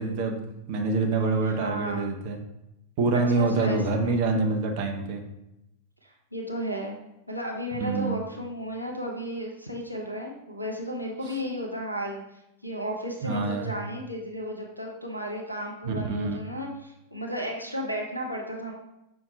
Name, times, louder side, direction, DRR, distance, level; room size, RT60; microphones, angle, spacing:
voice 1, 0.0-2.4 3.0-5.2 7.7-8.2 13.2-13.8 15.8-16.4, right 3 dB, 45° right, 3 dB, 0.7 m, -26 dB
voice 2, 1.4-2.1 3.1-4.1 6.0-7.0 7.3-12.2 12.6-18.7, equal, 90° right, -1 dB, 0.6 m, -34 dB
5.6 x 2.2 x 4.2 m, 0.87 s
figure-of-eight pair, 90°, 0 cm